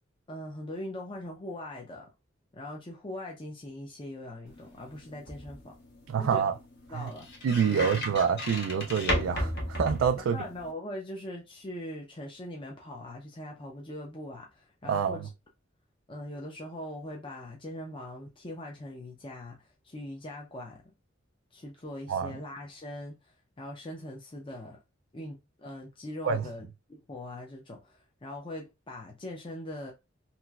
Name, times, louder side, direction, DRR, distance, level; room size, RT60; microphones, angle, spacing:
voice 1, 0.3-2.1 2.5-5.7 6.2-6.5 6.9-7.3 7.6-7.9 10.3-15.3 16.1-20.8 21.5-23.2 23.6-24.8 25.1-29.9, left 1 dB, 25° left, 0.6 m, -41 dB
sound 1, 4.5-10.7, equal, 55° left, 1.2 m, -35 dB
voice 2, 6.1-6.5 6.9-7.1 7.4-10.4 14.8-15.3 22.1-22.3 26.2-26.5, right 7 dB, 85° right, 0.3 m, -27 dB
3.0 x 3.0 x 2.3 m
head